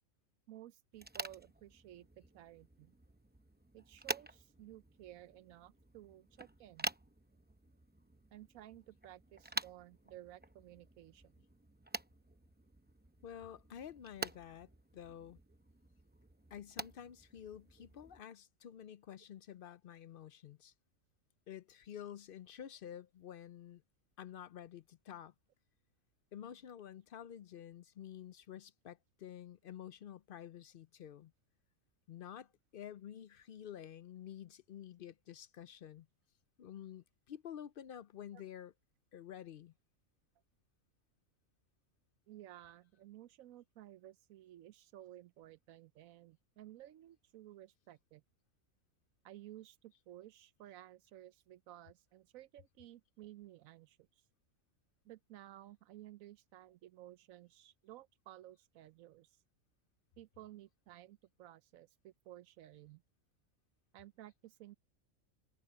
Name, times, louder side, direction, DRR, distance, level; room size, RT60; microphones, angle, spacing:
voice 1, 0.5-2.9 3.7-6.9 8.3-11.3 17.8-17.9 38.3-38.4 42.3-48.2 49.2-54.1 55.0-59.4 60.2-63.0 63.9-64.8, right 13 dB, 85° right, 1.0 m, -55 dB
sound 1, 0.9-18.2, right 1 dB, 10° right, 0.5 m, -48 dB
voice 2, 13.2-15.4 16.5-20.7 21.5-23.8 24.2-25.3 26.3-31.3 32.1-36.1 36.6-38.7 39.1-39.7, left 10 dB, 60° left, 0.6 m, -50 dB
omnidirectional pair, 1.4 m